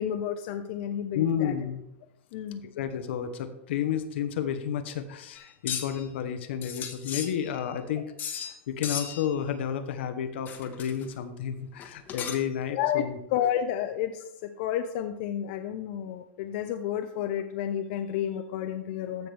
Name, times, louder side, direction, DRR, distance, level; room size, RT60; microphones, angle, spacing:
voice 1, 0.0-1.5 2.3-2.6 12.7-19.3, left 10 dB, 60° left, 6 dB, 0.7 m, -31 dB
voice 2, 1.1-1.8 2.8-13.2, left 8 dB, 75° left, 9 dB, 1.0 m, -31 dB
sound 1, 5.4-6.1 6.6-7.7 8.2-8.6 8.8-9.3 10.5-11.1 11.8-12.6, left 8 dB, 30° left, 1.2 m, -36 dB
14.5 x 5.9 x 3.4 m, 0.83 s
supercardioid pair, 125°, 6 cm